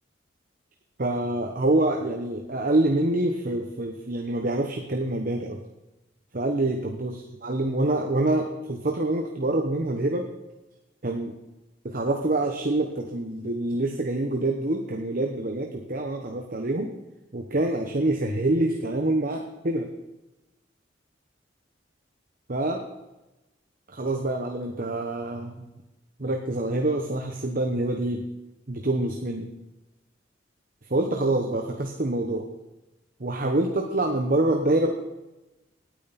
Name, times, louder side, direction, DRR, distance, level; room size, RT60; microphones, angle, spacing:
voice 1, 1.0-5.6 6.3-10.3 11.0-11.3 11.8-16.9 17.3-19.9 22.5-22.8 23.9-25.6 26.2-28.2 28.7-29.5 30.9-32.4 33.2-34.9, right 2 dB, 50° right, 3 dB, 1.1 m, -26 dB
18.0 x 9.4 x 4.2 m, 1.0 s
head